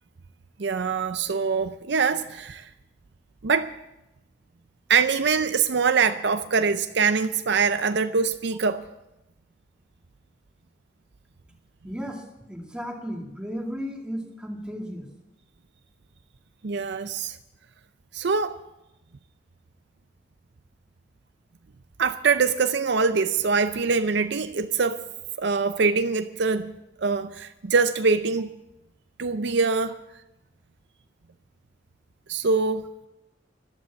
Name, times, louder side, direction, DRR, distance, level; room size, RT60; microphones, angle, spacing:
voice 1, 0.6-2.7 3.4-3.7 4.9-8.8 16.6-17.4 18.1-18.6 22.0-25.0 25.4-26.7 27.0-28.5 29.2-30.0 32.3-32.9, right 5 dB, 65° right, 0.6 m, -23 dB
voice 2, 11.8-15.1, equal, 5° right, 2.1 m, -34 dB
14.0 x 12.0 x 7.2 m
head